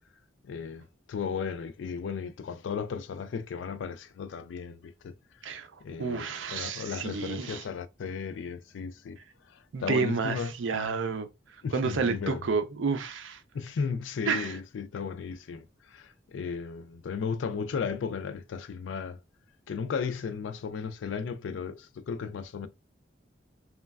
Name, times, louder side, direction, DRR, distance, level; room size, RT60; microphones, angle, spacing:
voice 1, 0.4-5.1 5.8-9.2 9.5-10.5 11.6-12.5 13.5-19.2 19.7-22.7, left 6 dB, 80° left, 0.4 m, -35 dB
voice 2, 6.0-7.6 9.7-11.3 11.7-13.4 14.3-14.5, right 5 dB, 85° right, 0.5 m, -30 dB
3.1 x 2.2 x 2.3 m
head